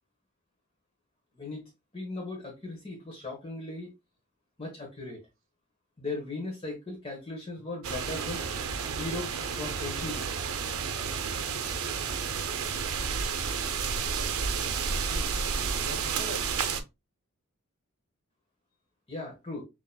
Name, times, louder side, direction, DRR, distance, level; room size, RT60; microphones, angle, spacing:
voice 1, 1.3-3.9 4.6-5.2 6.0-10.4 19.1-19.6, left 2 dB, 25° left, 1.1 m, -38 dB
sound 1, 7.8-16.8, right 6 dB, 85° right, 0.6 m, -31 dB
voice 2, 13.8-15.4 15.7-16.5, equal, 65° right, 1.1 m, -45 dB
6.7 x 2.9 x 2.2 m
head